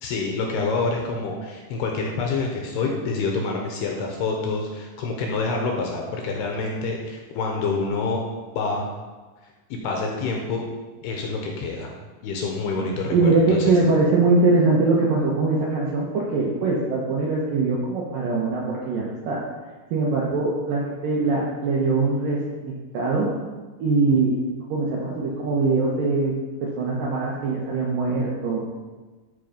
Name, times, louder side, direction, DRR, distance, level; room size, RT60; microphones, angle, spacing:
voice 1, 0.0-8.2 8.5-8.9 9.8-10.6 11.0-11.9 12.2-13.7, left 3 dB, 75° left, 1 dB, 2.6 m, -27 dB
voice 2, 13.1-19.4 19.9-22.4 22.7-23.3 23.8-24.4 24.7-26.3 26.6-28.6, right 3 dB, 70° right, -4 dB, 2.1 m, -22 dB
12.5 x 4.6 x 5.1 m, 1.3 s
omnidirectional pair, 5.3 m